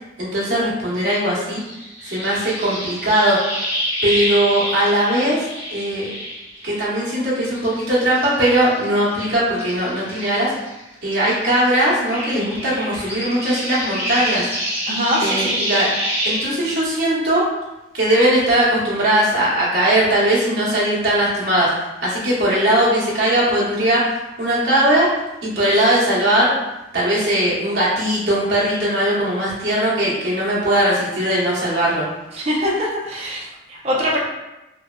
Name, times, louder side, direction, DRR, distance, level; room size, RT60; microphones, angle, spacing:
voice 1, 0.2-1.6 2.1-3.4 4.0-6.1 6.6-10.5 11.0-14.5 15.2-15.9 16.2-17.4 17.9-25.1 25.4-26.5 26.9-32.1, right 1 dB, 60° right, -7 dB, 1.0 m, -19 dB
sound 1, 1.6-7.1 7.5-10.8 11.1-16.5, equal, 35° left, 1.0 m, -27 dB
voice 2, 14.9-15.6 32.3-34.2, equal, 35° right, -4 dB, 0.6 m, -23 dB
3.1 x 2.2 x 2.3 m, 0.97 s
head